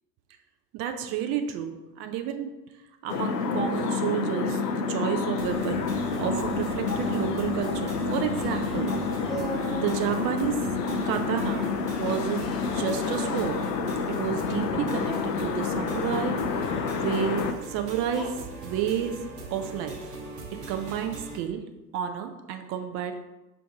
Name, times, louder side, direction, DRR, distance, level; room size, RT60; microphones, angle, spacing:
voice 1, 0.7-2.5 3.0-4.6 4.9-9.0 9.7-10.8 11.0-11.7 12.0-13.6 14.2-16.7 16.9-19.2 19.5-20.1 20.7-21.6 21.9-23.2, right 9 dB, 30° right, 6 dB, 0.4 m, -31 dB
sound 1, 3.1-17.5, left 5 dB, 80° left, 0.5 m, -29 dB
sound 2, 5.4-21.4, right 1 dB, 75° right, 1.0 m, -40 dB
Singing, 8.3-10.0 11.3-13.9 14.3-16.1 16.9-17.2 18.1-18.8, right 1 dB, ahead, 0.8 m, -40 dB
4.4 x 2.5 x 4.7 m, 1.0 s
figure-of-eight pair, 70°, 48 cm